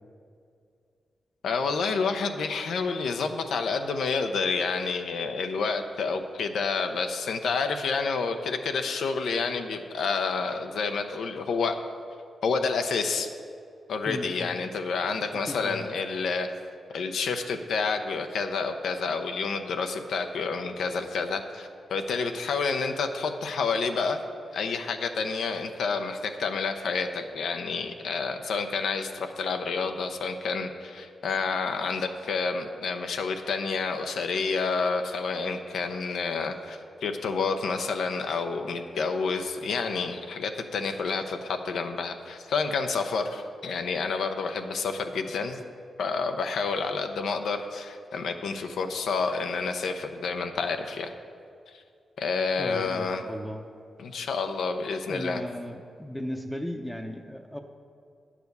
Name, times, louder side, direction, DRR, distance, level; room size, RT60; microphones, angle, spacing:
voice 1, 1.4-11.8 12.4-13.3 13.9-16.5 16.9-24.2 24.5-45.6 46.0-51.1 52.2-53.2 54.0-55.4, left 4 dB, 80° left, 6 dB, 0.6 m, -29 dB
voice 2, 14.0-14.6 15.5-15.8 52.6-53.6 55.1-57.6, equal, 5° left, 4 dB, 0.7 m, -36 dB
9.2 x 4.9 x 6.6 m, 2.4 s
cardioid pair, 60°, 0 cm